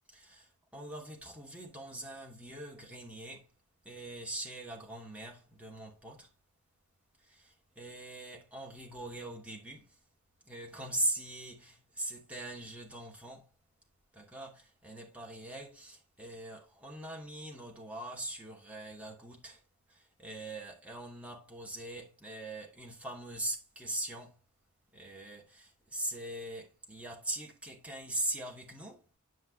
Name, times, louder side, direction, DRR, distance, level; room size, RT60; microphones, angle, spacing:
voice 1, 0.1-3.5 3.8-6.3 7.2-10.0 10.4-13.5 14.1-19.6 19.9-24.4 24.9-29.1, right 1 dB, 5° right, 2.6 m, -41 dB
11.0 x 5.5 x 3.2 m
head